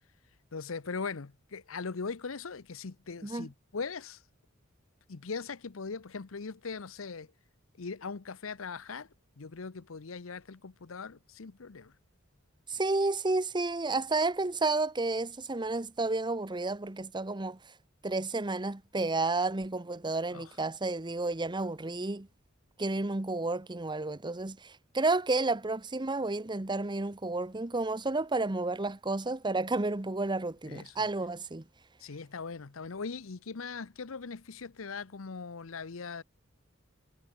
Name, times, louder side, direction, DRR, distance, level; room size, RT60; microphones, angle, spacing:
voice 1, 0.5-4.2 5.1-7.3 7.8-9.1 9.4-11.9 20.3-20.6 30.7-31.1 32.0-36.2, left 4 dB, 75° left, 0.8 m, -40 dB
voice 2, 12.7-17.6 18.0-22.3 22.8-31.6, right 3 dB, 20° right, 1.0 m, -31 dB
head